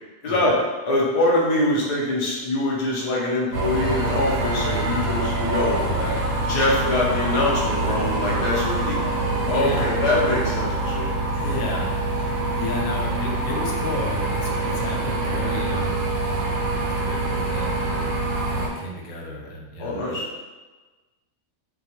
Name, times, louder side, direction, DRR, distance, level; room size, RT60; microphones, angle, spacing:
voice 1, 0.2-0.6 0.8-5.8 6.4-9.0 9.5-11.1 19.8-20.2, left 2 dB, 45° left, -5 dB, 0.5 m, -23 dB
sound 1, 3.5-18.7, right 2 dB, 85° right, 1.1 m, -25 dB
voice 2, 5.6-6.2 7.8-8.1 8.8-9.0 9.4-9.9 11.3-11.9 12.1-15.9 16.3-18.1 18.5-20.2, left 1 dB, 85° left, -1 dB, 1.1 m, -32 dB
2.3 x 2.3 x 2.9 m, 1.2 s
omnidirectional pair, 1.5 m